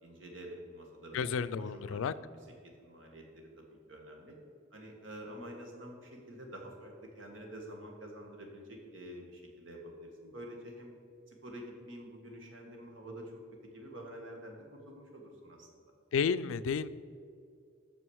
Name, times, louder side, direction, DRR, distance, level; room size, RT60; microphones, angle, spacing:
voice 1, 0.0-2.3 2.6-4.3 4.7-10.9 11.3-15.7, equal, 70° right, 1 dB, 1.6 m, -48 dB
voice 2, 1.1-2.1 16.1-16.9, left 6 dB, 85° left, 15 dB, 0.3 m, -31 dB
6.4 x 6.2 x 6.2 m, 2.3 s
head